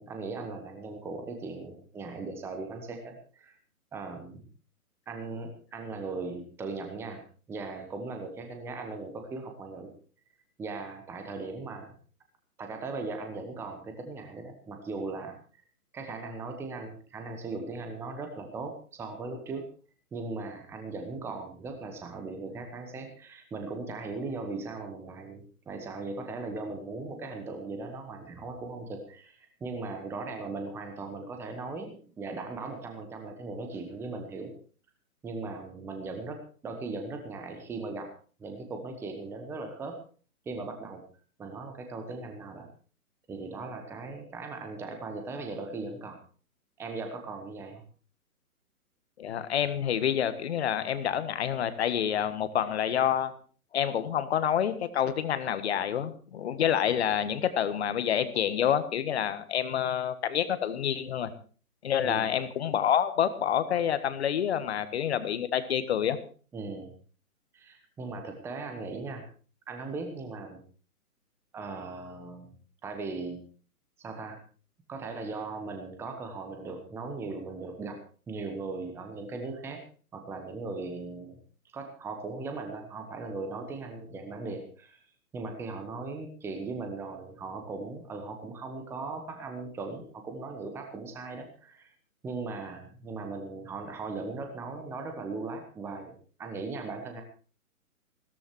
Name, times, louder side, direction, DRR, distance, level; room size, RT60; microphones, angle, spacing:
voice 1, 0.0-3.5 3.9-4.5 5.1-7.2 7.5-9.9 10.6-11.9 12.6-15.3 15.9-19.6 20.1-34.5 35.2-38.1 38.4-40.0 40.4-41.0 41.4-42.7 43.3-46.2 46.8-47.8 62.0-62.3 66.5-66.9 67.5-69.2 69.7-70.6 71.5-72.5 72.8-73.4 74.0-74.4 74.9-78.0 78.3-79.8 80.1-81.4 81.7-85.0 85.3-91.9 92.2-96.1 96.4-97.2, right 3 dB, 5° right, 5 dB, 1.2 m, -38 dB
voice 2, 49.2-53.3 53.7-61.3 61.8-66.2, left 9 dB, 45° left, 12 dB, 1.7 m, -28 dB
16.0 x 14.0 x 4.6 m, 0.40 s
hypercardioid pair, 145°, 45 cm